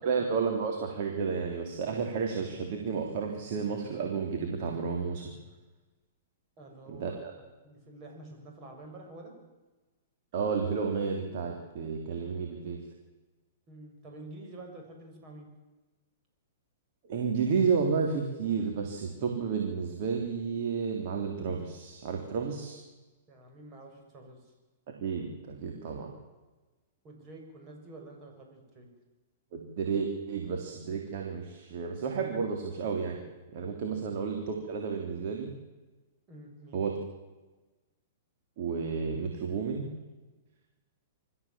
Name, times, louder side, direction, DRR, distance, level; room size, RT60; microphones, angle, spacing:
voice 1, 0.0-5.3 6.9-7.3 10.3-12.8 17.1-22.8 24.9-26.1 29.5-33.2 33.5-35.5 36.7-36.9 38.6-39.9, right 5 dB, 55° right, 2 dB, 3.4 m, -31 dB
voice 2, 6.6-7.2 7.6-9.3 13.7-15.5 23.3-24.5 27.0-28.9 36.3-36.8, right 2 dB, 30° right, 1 dB, 6.9 m, -48 dB
25.5 x 14.0 x 7.5 m, 1.2 s
hypercardioid pair, 125°, 0 cm